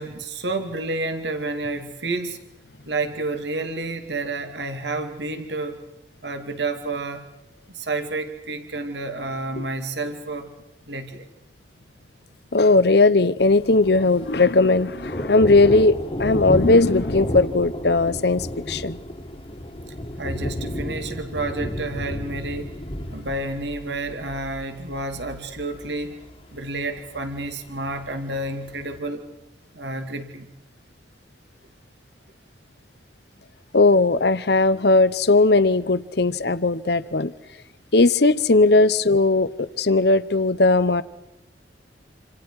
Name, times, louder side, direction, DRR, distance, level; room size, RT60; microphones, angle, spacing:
voice 1, 0.0-2.4 2.9-5.8 6.2-7.3 7.7-10.5 10.9-11.3 20.2-22.7 23.1-26.2 26.5-29.3 29.7-30.5, right 2 dB, 65° right, 6 dB, 2.4 m, -30 dB
voice 2, 12.5-19.0 33.7-37.3 37.9-41.0, left 3 dB, 60° left, 15 dB, 0.9 m, -18 dB
Thunder, 13.4-29.0, equal, 30° left, 1.9 m, -32 dB
28.0 x 27.0 x 4.8 m, 0.94 s
head